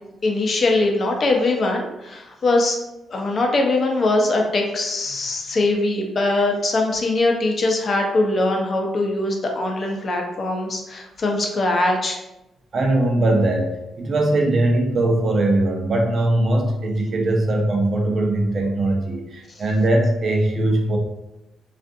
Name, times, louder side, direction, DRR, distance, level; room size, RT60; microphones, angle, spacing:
voice 1, 0.2-2.8 3.1-12.2, left 2 dB, 45° left, 1 dB, 0.5 m, -21 dB
voice 2, 12.7-13.7 14.0-21.0, right 1 dB, 50° right, 1 dB, 0.6 m, -20 dB
2.4 x 2.4 x 2.6 m, 0.93 s
cardioid pair, 85°, 0 cm